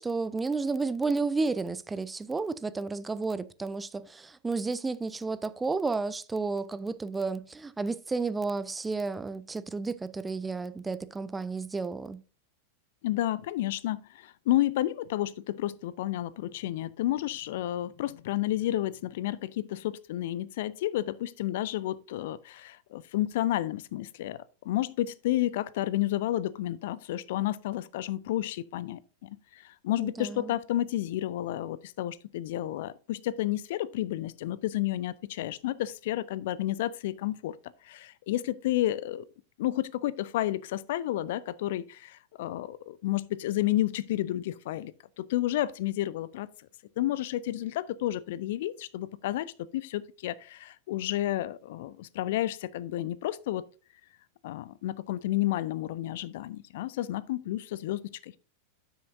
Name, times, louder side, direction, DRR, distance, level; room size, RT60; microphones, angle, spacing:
voice 1, 0.0-12.2 30.0-30.5, right 4 dB, 10° right, 0.4 m, -32 dB
voice 2, 13.0-37.6 37.8-39.2 39.6-44.9 45.2-46.5 47.0-53.6 54.4-58.4, left 14 dB, 55° left, 0.3 m, -31 dB
12.0 x 6.4 x 2.6 m
figure-of-eight pair, 90°, 0 cm